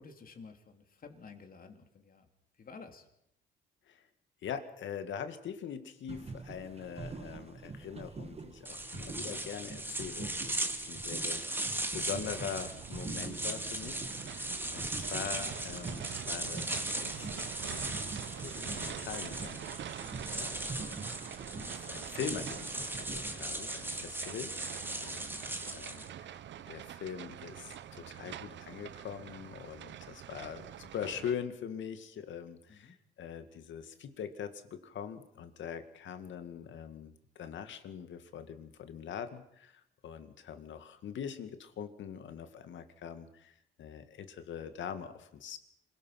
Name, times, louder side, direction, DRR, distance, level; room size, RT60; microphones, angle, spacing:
voice 1, 0.0-2.2 2.6-3.0 20.0-20.3 24.8-25.1 32.7-32.9, left 4 dB, 45° left, 5 dB, 3.2 m, -52 dB
voice 2, 4.4-11.4 11.9-18.0 18.4-19.6 19.9-21.1 21.5-24.5 25.0-25.5 25.7-26.4 26.7-45.6, left 8 dB, 70° left, 9 dB, 2.2 m, -43 dB
sound 1, 6.1-23.6, right 4 dB, 30° right, 1.5 m, -46 dB
sound 2, 8.6-26.1, right 1 dB, 10° right, 2.2 m, -38 dB
sound 3, 12.2-31.3, right 10 dB, 65° right, 0.9 m, -45 dB
26.5 x 18.5 x 6.0 m, 0.76 s
cardioid pair, 90°, 20 cm